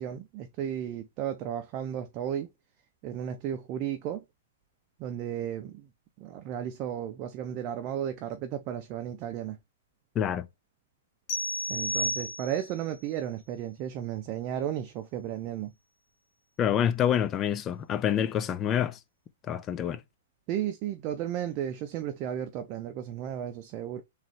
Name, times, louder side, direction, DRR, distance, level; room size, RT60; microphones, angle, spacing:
voice 1, 0.0-2.5 3.0-4.2 5.0-5.9 6.2-9.6 11.7-15.7 20.5-24.0, right 10 dB, 35° right, 0.6 m, -34 dB
voice 2, 10.1-10.5 16.6-19.0 19.5-20.0, left 9 dB, 25° left, 0.6 m, -27 dB
sound 1, 11.3-12.8, left 1 dB, 40° left, 1.6 m, -32 dB
3.7 x 3.2 x 3.2 m
hypercardioid pair, 140°, 0 cm